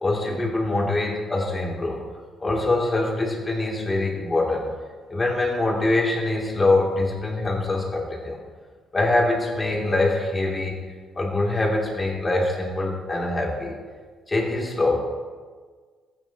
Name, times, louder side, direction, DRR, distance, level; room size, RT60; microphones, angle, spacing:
voice 1, 0.0-2.0 2.4-4.6 5.1-8.4 8.9-10.8 11.1-13.7 14.3-15.0, left 2 dB, 25° left, -2 dB, 2.8 m, -24 dB
15.5 x 9.3 x 2.9 m, 1.5 s
cardioid pair, 90°, 0 cm